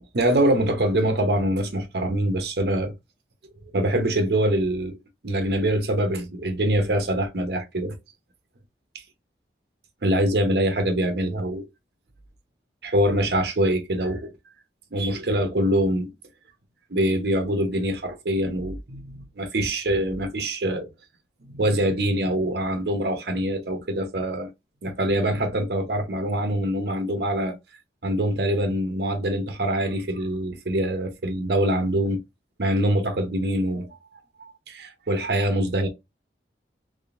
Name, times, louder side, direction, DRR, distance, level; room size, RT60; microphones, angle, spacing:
voice 1, 0.1-2.9 3.7-5.0 5.2-8.0 10.0-11.7 12.8-14.3 14.9-16.1 16.9-20.9 21.5-24.5 24.8-27.5 28.0-32.2 32.6-34.0 34.4-35.9, right 1 dB, 65° right, 0.8 m, -24 dB
3.6 x 3.2 x 2.4 m
head